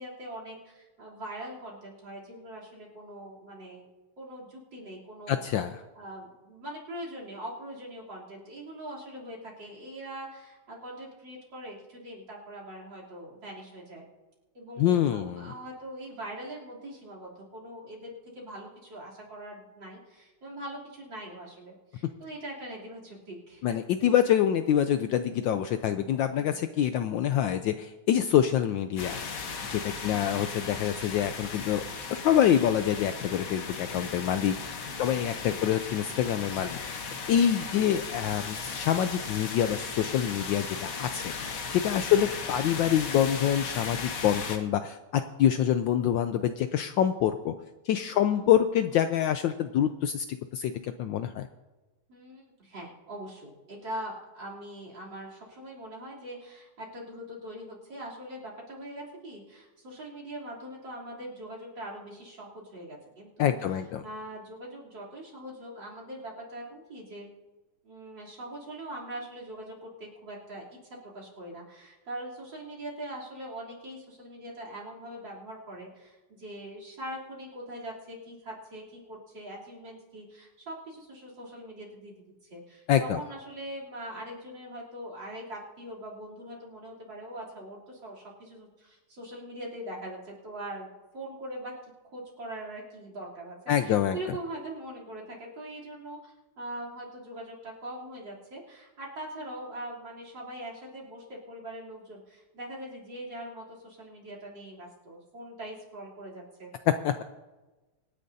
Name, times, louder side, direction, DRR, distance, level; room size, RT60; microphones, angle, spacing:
voice 1, 0.0-3.9 4.2-5.5 6.0-14.0 14.5-23.8 26.3-26.6 30.0-30.2 34.9-35.2 35.5-35.6 42.1-42.3 48.1-48.4 52.1-63.6 64.0-67.3 67.8-70.6 71.0-82.2 82.5-106.7, right 1 dB, 55° right, -2 dB, 4.0 m, -42 dB
voice 2, 5.3-5.8 14.8-15.5 23.6-29.2 29.7-31.8 32.1-37.0 37.3-47.5 47.8-50.2 50.5-51.5 63.4-64.0 82.9-83.2 93.7-94.2 106.9-107.2, left 10 dB, 75° left, 9 dB, 1.1 m, -26 dB
sound 1, 29.0-44.6, left 5 dB, 50° left, 1.2 m, -37 dB
25.5 x 10.0 x 2.7 m, 1.2 s
omnidirectional pair, 2.4 m